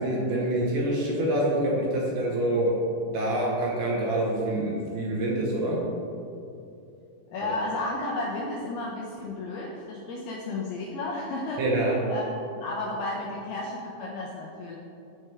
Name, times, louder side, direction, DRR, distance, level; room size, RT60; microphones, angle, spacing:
voice 1, 0.0-2.7 3.1-5.9 11.6-12.0, right 1 dB, 70° right, -4 dB, 2.8 m, -26 dB
voice 2, 7.3-14.8, left 2 dB, 80° left, -3 dB, 2.3 m, -33 dB
14.0 x 4.8 x 3.3 m, 2.7 s
omnidirectional pair, 5.3 m